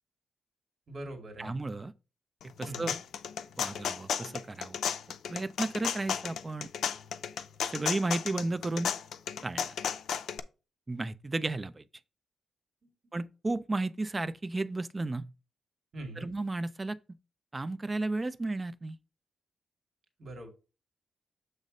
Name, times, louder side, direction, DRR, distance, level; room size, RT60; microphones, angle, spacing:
voice 1, 0.9-1.6 2.7-3.0 12.8-12.9 15.9-16.3 20.2-20.5, right 1 dB, 45° right, 2.2 m, -42 dB
voice 2, 1.4-1.9 2.4-2.9 3.6-4.8 5.3-6.7 7.7-8.9 9.4-9.7 10.9-11.8 13.1-15.3 16.2-17.0 17.5-19.0, right 2 dB, 20° right, 0.4 m, -33 dB
sound 1, 2.4-10.4, left 8 dB, 85° left, 0.5 m, -34 dB
7.4 x 3.3 x 5.1 m
wide cardioid pair, 165°, 0 cm